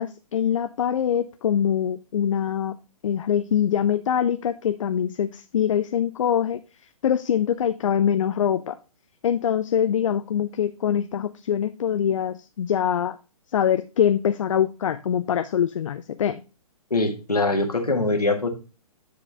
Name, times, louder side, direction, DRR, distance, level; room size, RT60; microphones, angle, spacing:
voice 1, 0.0-2.7 3.0-6.6 7.0-8.8 9.2-13.2 13.5-16.4, left 9 dB, 55° left, 11 dB, 0.5 m, -24 dB
voice 2, 16.9-18.5, left 2 dB, 85° left, 4 dB, 1.8 m, -23 dB
10.0 x 5.0 x 3.3 m, 0.32 s
figure-of-eight pair, 125°, 19 cm